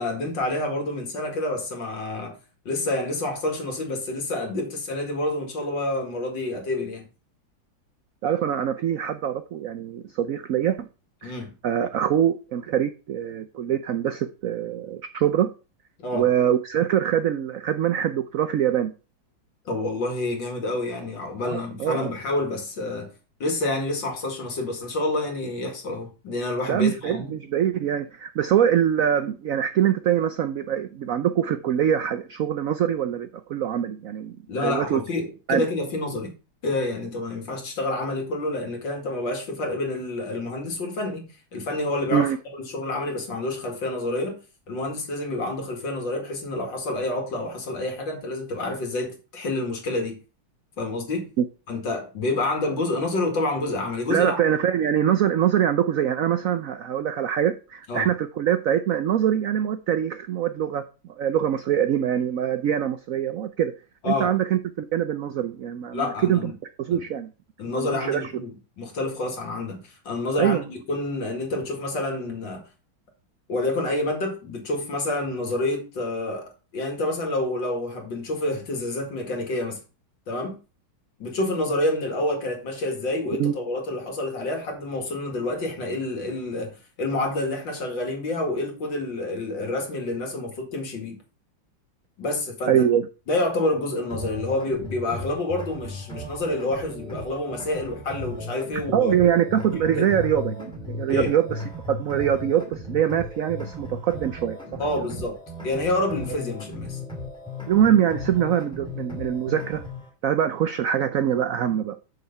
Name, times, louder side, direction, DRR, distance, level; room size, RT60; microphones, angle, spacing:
voice 1, 0.0-2.4 2.6-7.1 11.2-11.5 16.0-16.3 19.7-23.1 23.4-27.3 34.5-36.4 36.6-44.4 44.7-50.2 50.8-51.3 51.7-54.4 57.9-58.1 64.0-64.3 65.9-66.5 66.9-67.0 67.6-72.6 73.5-79.8 80.3-80.6 81.2-91.2 92.2-92.9 93.3-99.1 99.7-100.1 101.1-101.4 104.8-105.4 105.6-107.0, left 2 dB, 65° left, 2.9 m, -28 dB
voice 2, 8.2-10.9 11.2-11.3 11.6-15.5 16.1-18.9 21.4-22.1 26.7-34.4 34.6-35.0 35.5-35.7 42.1-42.4 51.4-51.5 54.1-60.8 61.1-63.7 64.0-66.5 66.8-67.3 67.7-68.3 70.4-70.7 83.4-83.5 92.7-93.1 98.9-101.6 101.9-104.8 107.7-109.8 110.2-112.0, right 10 dB, 80° right, 0.7 m, -23 dB
sound 1, 94.1-110.1, left 1 dB, ahead, 2.0 m, -36 dB
6.8 x 6.6 x 5.4 m
omnidirectional pair, 2.2 m